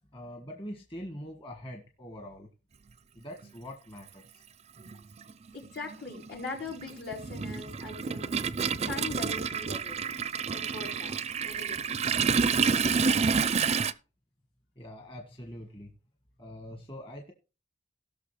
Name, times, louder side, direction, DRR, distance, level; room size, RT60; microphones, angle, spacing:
voice 1, 0.1-2.5 3.1-4.4 14.7-15.9 16.4-17.3, equal, 30° left, 2 dB, 1.6 m, -43 dB
Toilet flush, 3.4-3.5 4.8-5.0 5.3-13.9, right 5 dB, 35° right, 0.5 m, -29 dB
voice 2, 5.5-8.3 8.9-10.2 10.5-12.0, left 3 dB, 75° left, -3 dB, 4.6 m, -41 dB
18.0 x 6.2 x 3.3 m, 0.33 s
head